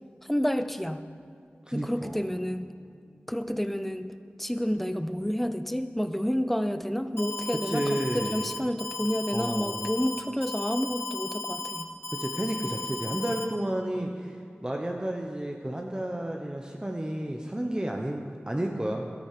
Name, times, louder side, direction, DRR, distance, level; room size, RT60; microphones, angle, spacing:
voice 1, 0.3-1.0 1.7-2.7 3.3-4.1 4.4-7.8 8.1-11.9, equal, 5° left, 10 dB, 0.7 m, -29 dB
voice 2, 1.7-2.3 7.5-8.4 9.3-9.9 12.1-19.1, right 1 dB, 20° right, 1 dB, 1.1 m, -32 dB
Alarm, 7.2-13.5, left 3 dB, 70° left, 1.5 m, -35 dB
12.5 x 10.0 x 6.8 m, 2.3 s
wide cardioid pair, 50°, 4 cm